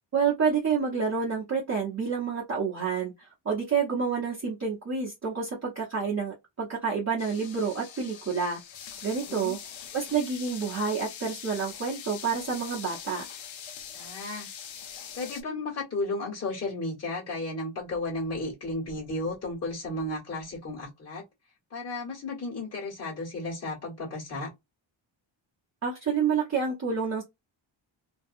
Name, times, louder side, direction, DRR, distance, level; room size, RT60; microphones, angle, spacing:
voice 1, 0.1-8.6 9.0-9.6 9.9-13.2 25.8-27.2, right 6 dB, 35° right, 0.9 m, -28 dB
sound 1, 7.2-15.4, left 8 dB, 70° left, 0.7 m, -43 dB
voice 2, 9.2-9.6 13.9-14.5 15.1-21.2 21.7-24.5, left 2 dB, 30° left, 1.4 m, -34 dB
2.7 x 2.2 x 2.5 m
wide cardioid pair, 125°, 48 cm